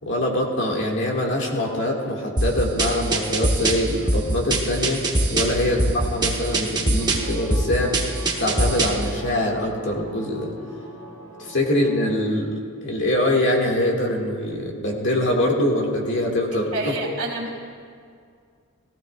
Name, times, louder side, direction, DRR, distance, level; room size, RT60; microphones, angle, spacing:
voice 1, 0.0-5.0 5.3-7.9 8.4-10.5 11.4-12.5 12.8-16.9, left 1 dB, 60° left, -1 dB, 2.0 m, -23 dB
sound 1, 2.4-9.1, right 2 dB, 20° right, 1.1 m, -23 dB
sound 2, 7.0-12.1, equal, 80° left, 1.7 m, -41 dB
voice 2, 16.7-17.6, right 2 dB, 70° right, -1 dB, 2.3 m, -28 dB
17.5 x 15.5 x 2.4 m, 2.2 s
head